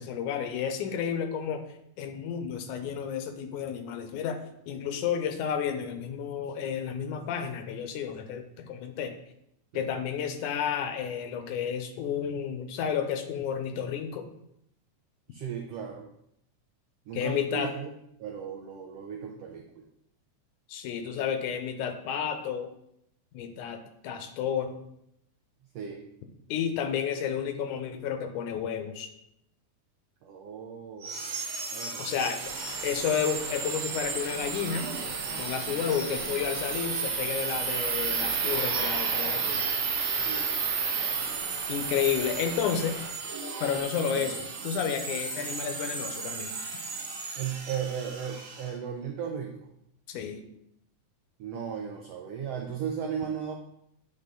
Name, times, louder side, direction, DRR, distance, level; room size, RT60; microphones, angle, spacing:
voice 1, 0.0-1.7 2.0-4.4 4.7-9.1 9.7-14.3 17.1-17.7 20.7-22.7 23.3-24.7 26.5-29.1 32.0-32.4 32.8-34.9 35.4-39.6 41.7-43.0 43.6-46.5 50.1-50.4, left 8 dB, 85° left, 7 dB, 2.1 m, -31 dB
voice 2, 15.3-16.1 17.1-17.9 18.2-19.9 25.7-26.1 30.2-31.3 31.7-32.1 40.1-40.6 47.3-49.6 51.4-53.5, right 7 dB, 85° right, 2 dB, 1.3 m, -36 dB
sound 1, 31.0-48.7, right 5 dB, 65° right, 1.8 m, -33 dB
sound 2, 32.4-43.1, right 2 dB, 45° right, 1.8 m, -43 dB
9.7 x 3.7 x 3.8 m, 0.76 s
omnidirectional pair, 3.6 m